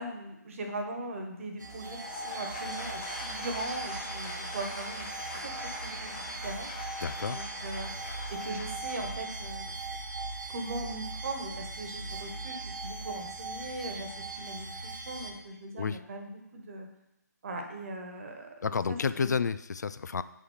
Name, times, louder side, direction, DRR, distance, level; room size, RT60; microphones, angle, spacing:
voice 1, 0.0-6.7 7.3-7.9 8.3-9.7 10.5-16.9 17.4-19.3, right 2 dB, 45° right, 3 dB, 1.4 m, -40 dB
Applause / Crowd, 1.6-9.8, left 2 dB, 25° left, 1.3 m, -42 dB
sound 1, 1.6-15.3, right 3 dB, 90° right, 1.3 m, -39 dB
voice 2, 7.0-7.4 15.7-16.0 18.6-20.2, left 5 dB, 70° left, 14 dB, 0.4 m, -30 dB
5.6 x 4.9 x 6.5 m, 0.87 s
figure-of-eight pair, 155°, 10 cm